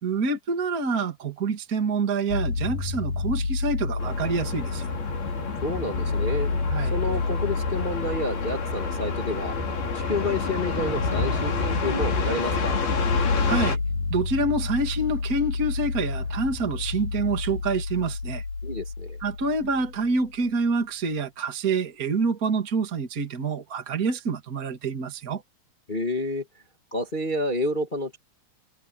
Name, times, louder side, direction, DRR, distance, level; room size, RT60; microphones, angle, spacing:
voice 1, 0.0-4.8 6.7-7.0 13.5-13.8 14.1-18.4 19.2-25.4, right 3 dB, 25° right, 2.7 m, -27 dB
sound 1, 2.3-20.3, left 4 dB, 65° left, 9.3 m, -30 dB
sound 2, 4.0-13.8, left 4 dB, 80° left, 6.8 m, -29 dB
voice 2, 5.6-6.5 6.9-9.5 9.9-12.8 18.6-19.2 25.9-26.4 26.9-28.2, left 1 dB, 25° left, 1.2 m, -29 dB
omnidirectional pair, 4.3 m